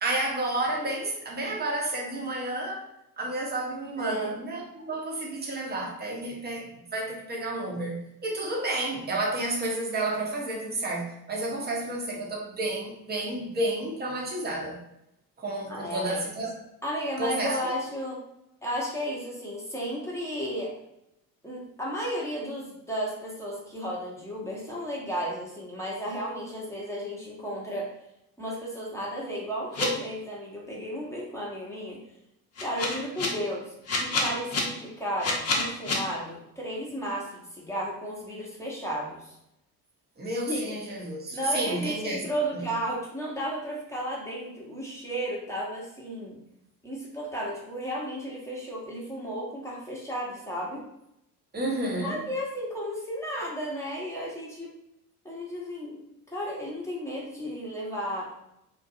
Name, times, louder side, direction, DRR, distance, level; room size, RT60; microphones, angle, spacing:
voice 1, 0.0-2.8 3.2-14.8 15.4-16.5 17.2-17.8 40.2-42.2 42.5-42.7 51.5-52.2, right 2 dB, 20° right, -1 dB, 0.8 m, -31 dB
voice 2, 4.0-4.3 15.7-16.2 16.8-18.2 18.6-20.7 21.4-27.9 28.4-32.0 32.6-39.4 40.4-40.7 41.3-46.4 46.8-50.8 52.0-54.7 55.2-56.0 56.3-58.3, equal, 5° left, -5 dB, 0.9 m, -33 dB
sound 1, 29.7-29.8 32.6-33.3 33.9-34.6 35.2-35.9, left 3 dB, 35° left, 0.7 m, -27 dB
2.6 x 2.3 x 2.6 m, 0.82 s
hypercardioid pair, 60°, 47 cm